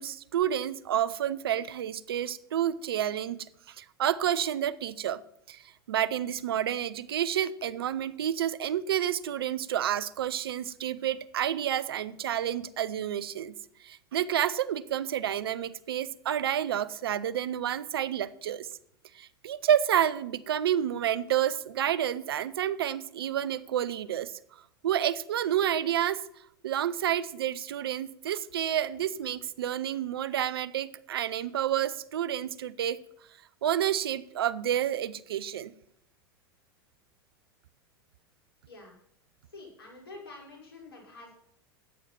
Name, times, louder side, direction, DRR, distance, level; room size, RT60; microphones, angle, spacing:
voice 1, 0.0-3.4 3.7-5.2 5.5-5.6 5.9-13.5 13.8-18.7 19.1-24.3 24.8-26.2 26.6-33.0 33.6-35.7, right 10 dB, 75° right, 17 dB, 0.7 m, -29 dB
voice 2, 38.7-39.0 39.5-41.3, left 2 dB, 85° left, -1 dB, 5.4 m, -47 dB
13.5 x 9.0 x 6.0 m, 0.73 s
hypercardioid pair, 95°, 13 cm